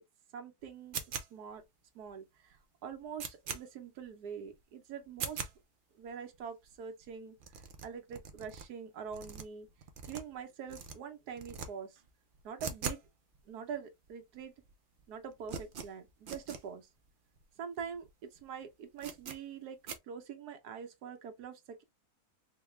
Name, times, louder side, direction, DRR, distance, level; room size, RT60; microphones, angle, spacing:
voice 1, 0.3-1.0 1.3-1.6 1.9-2.6 2.8-5.4 6.0-7.4 7.8-9.7 10.1-12.0 12.4-13.0 13.5-14.5 15.1-16.9 17.6-19.8 20.1-21.8, right 7 dB, 85° right, 1.3 m, -44 dB
sound 1, 0.9-1.6 2.1-2.2 2.5-2.6 2.9-3.6 4.1-4.2 4.5-4.6 5.1-5.5 6.1-6.2 6.3-6.4 6.6-6.8 7.0-7.1 7.4-8.6 9.1-10.4 10.7-10.9 11.3-11.7 12.0-13.1 13.3-13.4 14.1-14.2 14.3-14.7 15.0-16.6 17.0-17.1 17.4-17.5 17.9-18.1 18.4-18.5 19.0-19.4 19.9-20.0, right 6 dB, 70° right, 0.5 m, -42 dB
4.0 x 2.2 x 3.1 m
omnidirectional pair, 1.6 m